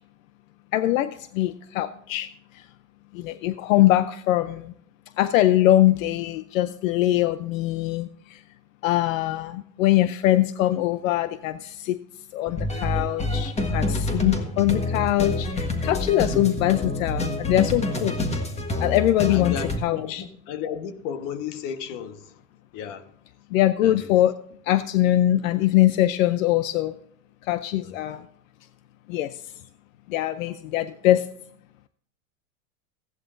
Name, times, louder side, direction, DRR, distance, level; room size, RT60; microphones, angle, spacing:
voice 1, 0.7-2.3 2.5-2.6 3.1-4.7 5.2-8.4 8.8-12.0 12.3-18.2 18.8-19.5 19.8-20.2 23.5-24.4 24.7-26.9 27.4-28.2 29.1-29.4 30.1-31.3, left 14 dB, 80° left, 0.7 m, -22 dB
sound 1, 12.5-19.8, left 2 dB, 15° left, 1.5 m, -27 dB
voice 2, 19.3-22.3 22.7-23.0 23.8-24.1 27.8-28.2, left 8 dB, 50° left, 1.3 m, -34 dB
16.0 x 11.0 x 2.6 m
supercardioid pair, 125°, 40 cm